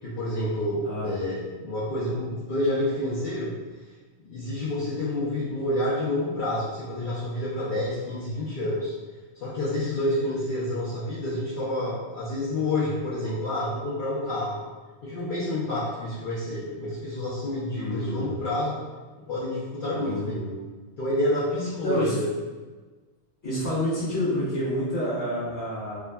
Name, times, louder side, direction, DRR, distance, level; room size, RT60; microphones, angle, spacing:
voice 1, 0.0-3.6 4.3-8.9 9.3-14.6 15.0-18.8 19.3-20.4 21.0-22.3, left 1 dB, 55° left, -8 dB, 0.7 m, -28 dB
voice 2, 17.8-18.5 19.9-20.6 21.8-22.2 23.4-26.0, equal, 20° left, -10 dB, 1.0 m, -28 dB
3.4 x 2.1 x 2.2 m, 1.3 s
omnidirectional pair, 1.2 m